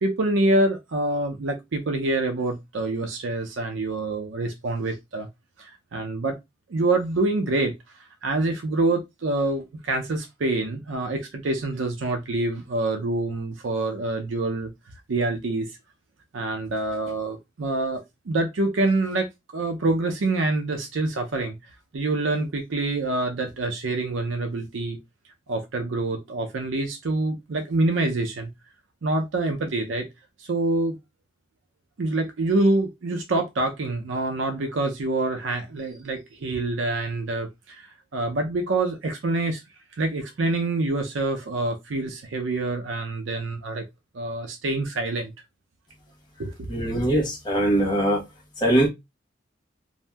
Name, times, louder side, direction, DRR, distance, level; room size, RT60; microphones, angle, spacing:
voice 1, 0.0-5.3 5.6-6.4 6.7-7.7 8.2-14.7 15.1-15.7 16.3-21.5 21.9-25.0 25.5-28.5 29.0-30.1 30.4-31.0 32.0-39.6 40.0-43.8 44.1-45.3 46.4-46.7, right 2 dB, 80° right, 0.5 m, -26 dB
voice 2, 46.7-48.2 48.6-48.9, right 1 dB, 25° left, 1.1 m, -21 dB
2.6 x 2.1 x 3.3 m
head